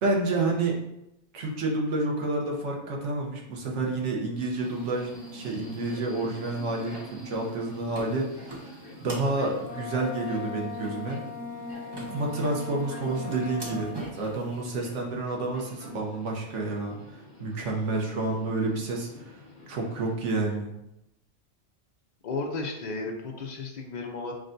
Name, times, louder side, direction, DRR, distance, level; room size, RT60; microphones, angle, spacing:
voice 1, 0.0-0.8 1.3-8.6 9.0-11.2 12.1-17.0 17.4-19.4 19.7-20.7, right 2 dB, 80° right, 0 dB, 1.1 m, -29 dB
Subway metro underground, 4.4-20.1, left 1 dB, 20° left, 1.1 m, -48 dB
sound 1, 4.6-14.4, right 1 dB, 30° right, 0.5 m, -43 dB
Wind instrument woodwind instrument, 9.6-14.1, left 5 dB, 85° left, 1.1 m, -39 dB
voice 2, 22.2-24.3, left 3 dB, 50° left, 2 dB, 0.6 m, -33 dB
6.1 x 2.2 x 2.5 m, 0.88 s
omnidirectional pair, 1.2 m